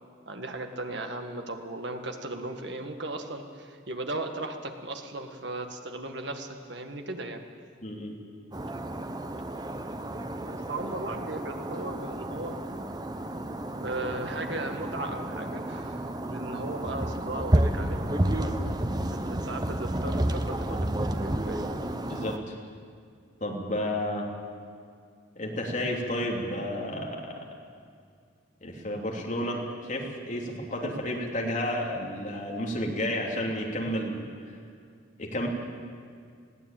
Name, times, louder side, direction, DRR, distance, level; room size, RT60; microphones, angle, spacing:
voice 1, 0.2-7.4 10.4-12.6 13.8-18.6 19.1-21.8, right 2 dB, 60° right, 5 dB, 1.8 m, -37 dB
voice 2, 7.8-8.1 22.1-22.5 23.4-24.3 25.3-27.4 28.6-34.2 35.2-35.5, left 1 dB, 40° left, -1 dB, 3.1 m, -31 dB
sound 1, 8.5-22.4, right 1 dB, 20° right, 0.9 m, -31 dB
21.0 x 16.0 x 9.1 m, 2.2 s
head